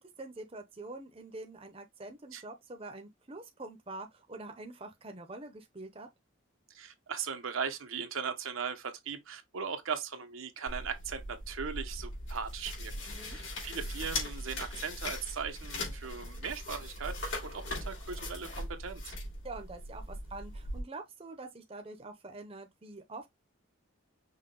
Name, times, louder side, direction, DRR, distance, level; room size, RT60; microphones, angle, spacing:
voice 1, 0.2-6.1 13.0-13.4 19.4-23.3, right 2 dB, 30° right, 0.6 m, -45 dB
voice 2, 6.7-19.2, right 6 dB, 80° right, 0.8 m, -39 dB
sound 1, 10.7-20.8, left 1 dB, 70° left, 2.6 m, -40 dB
5.7 x 2.2 x 3.8 m
head